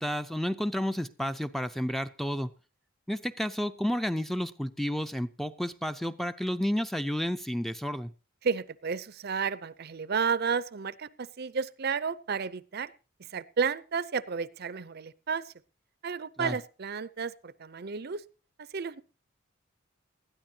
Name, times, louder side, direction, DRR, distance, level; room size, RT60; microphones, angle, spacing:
voice 1, 0.0-2.5 3.1-8.1 16.4-16.5, equal, ahead, 0.5 m, -31 dB
voice 2, 8.4-12.9 13.2-15.5 16.0-18.2 18.6-19.0, right 6 dB, 50° right, 0.6 m, -32 dB
19.0 x 13.0 x 2.8 m
head